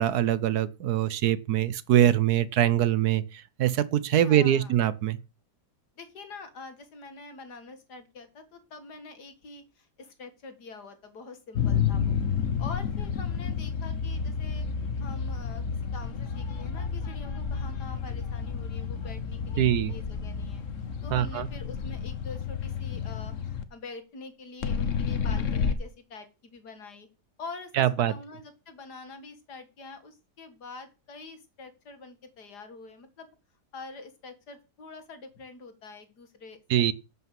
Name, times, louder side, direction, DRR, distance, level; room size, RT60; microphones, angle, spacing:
voice 1, 0.0-5.2 19.6-19.9 21.1-21.5 27.7-28.1 36.7-36.9, right 11 dB, 70° right, 1.2 m, -23 dB
voice 2, 4.2-4.8 6.0-12.1 12.6-14.7 15.0-15.6 15.9-20.6 21.0-27.1 27.4-33.3 33.7-36.9, left 3 dB, 70° left, 2.4 m, -45 dB
sound 1, 11.6-23.6 24.6-25.7, left 6 dB, 50° left, 1.3 m, -30 dB
11.0 x 5.8 x 7.6 m
omnidirectional pair, 1.8 m